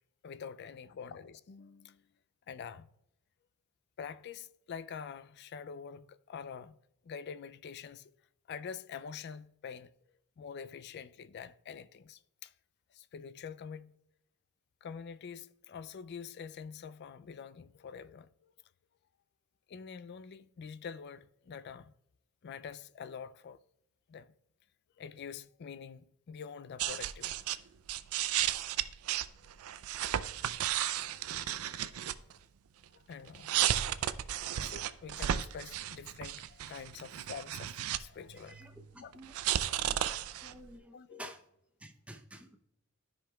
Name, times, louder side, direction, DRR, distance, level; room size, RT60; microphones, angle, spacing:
voice 1, 0.2-2.0 2.5-2.9 4.0-6.8 7.0-8.1 8.5-9.9 10.4-12.5 12.9-13.9 14.8-18.5 19.7-21.9 22.4-23.6 24.1-24.3 25.0-27.4 30.5-32.2 32.9-38.7 39.0-39.1 40.1-40.2 40.9-41.3, left 6 dB, 50° left, 0.3 m, -46 dB
sound 1, 26.8-27.6 27.9-32.3 33.3-38.0 38.3-40.6, right 11 dB, 75° right, 0.4 m, -34 dB
voice 2, 38.5-39.3 40.4-41.4 41.8-42.6, right 1 dB, 5° right, 0.6 m, -50 dB
13.0 x 5.1 x 2.3 m
head